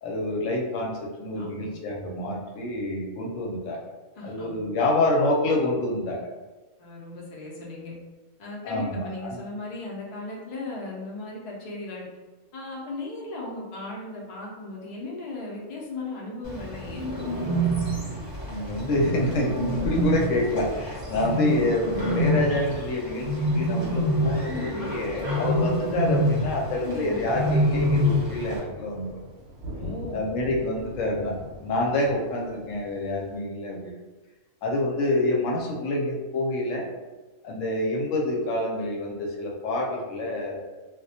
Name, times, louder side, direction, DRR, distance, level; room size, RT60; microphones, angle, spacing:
voice 1, 0.0-3.9 4.2-6.3 8.6-9.4 18.5-23.3 23.5-29.1 30.1-34.0 34.6-36.9 37.4-40.7, left 1 dB, 70° left, -1 dB, 0.9 m, -27 dB
voice 2, 1.3-1.7 4.2-4.7 6.8-7.9 8.4-12.1 12.5-17.3 29.7-30.2, left 2 dB, 90° left, -3 dB, 0.3 m, -37 dB
Bird, 16.4-28.6, equal, 30° right, 0.4 m, -27 dB
Thunder, 27.6-33.4, equal, 75° right, 1.0 m, -41 dB
2.3 x 2.1 x 2.7 m, 1.2 s
omnidirectional pair, 1.5 m